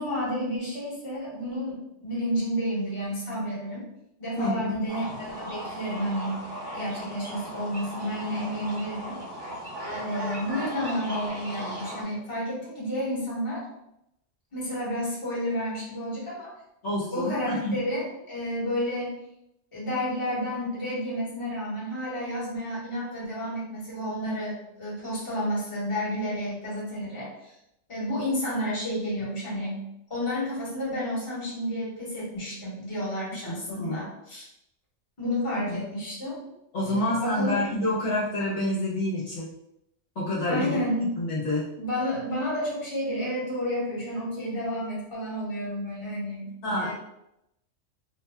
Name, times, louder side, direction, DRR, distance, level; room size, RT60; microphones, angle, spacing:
voice 1, 0.0-3.9 4.2-6.4 6.7-9.2 9.9-13.6 14.5-16.5 17.1-19.1 19.7-27.5 27.9-29.8 30.1-34.5 35.2-36.4 36.8-37.6 40.5-41.1 41.8-46.5 46.8-46.9, equal, 25° left, -7 dB, 1.0 m, -31 dB
voice 2, 4.4-4.8 16.8-17.8 33.5-34.0 35.7-35.8 36.7-39.5 40.1-40.8 41.2-41.7 46.6-46.9, left 1 dB, 65° left, -7 dB, 1.1 m, -28 dB
sound 1, 4.9-12.0, right 1 dB, 20° right, 0.8 m, -37 dB
2.5 x 2.2 x 3.3 m, 0.82 s
omnidirectional pair, 1.3 m